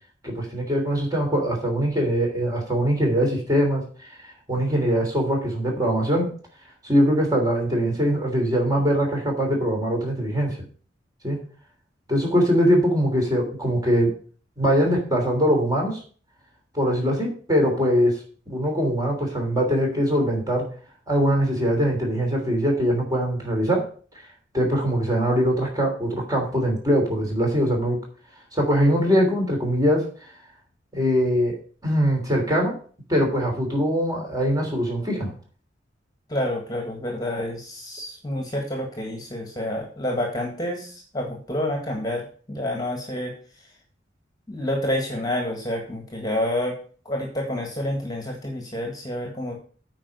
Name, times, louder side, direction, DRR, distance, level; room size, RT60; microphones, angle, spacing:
voice 1, 0.2-6.3 6.8-10.6 11.2-11.4 12.1-14.1 14.6-16.0 16.7-18.2 18.5-20.7 21.1-23.9 24.5-28.0 28.5-30.1 30.9-31.6 31.8-32.8 33.1-35.3, equal, 20° right, 0 dB, 3.1 m, -22 dB
voice 2, 36.3-43.3 44.5-46.8 47.0-49.6, left 1 dB, 20° left, 2 dB, 1.6 m, -28 dB
8.9 x 5.0 x 6.7 m, 0.42 s
head